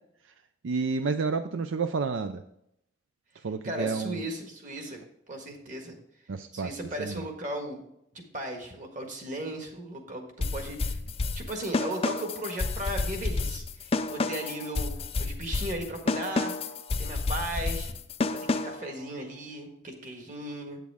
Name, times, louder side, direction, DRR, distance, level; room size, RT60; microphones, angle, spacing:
voice 1, 0.6-2.4 3.4-4.2 6.3-6.7 7.0-7.2, right 4 dB, 75° right, 9 dB, 0.5 m, -30 dB
voice 2, 3.6-5.0 5.3-6.0 6.5-7.8 8.1-11.0 11.3-14.9 15.2-16.5 17.0-17.9 18.3-20.8, right 1 dB, 40° right, 3 dB, 1.6 m, -36 dB
sound 1, 10.4-18.9, left 3 dB, 30° left, 0.4 m, -30 dB
8.4 x 8.2 x 3.5 m, 0.77 s
head